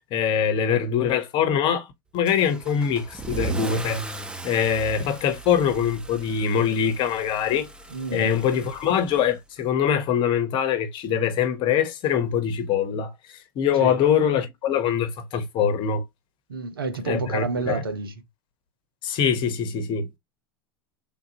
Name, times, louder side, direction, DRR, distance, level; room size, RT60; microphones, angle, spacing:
voice 1, 0.0-1.9 2.1-4.1 4.4-7.7 8.1-16.0 17.0-17.8 19.0-20.1, left 8 dB, 45° left, 1.1 m, -23 dB
Car / Engine starting / Accelerating revving vroom, 2.2-9.6, right 3 dB, 10° right, 0.6 m, -38 dB
voice 2, 7.9-8.4 13.8-14.0 16.5-18.1, right 4 dB, 85° right, 0.9 m, -29 dB
3.5 x 2.6 x 2.9 m
figure-of-eight pair, 80°, 12 cm